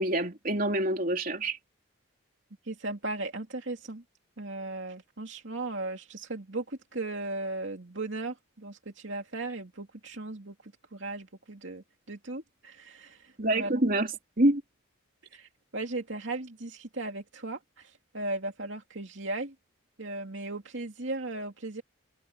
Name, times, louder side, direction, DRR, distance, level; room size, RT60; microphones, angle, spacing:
voice 1, 0.0-1.6 13.4-14.1 14.4-14.6, right 1 dB, 45° right, 3.3 m, -26 dB
voice 2, 2.6-4.0 4.4-13.7 15.3-19.5 20.0-21.8, right 2 dB, 65° right, 2.8 m, -37 dB
head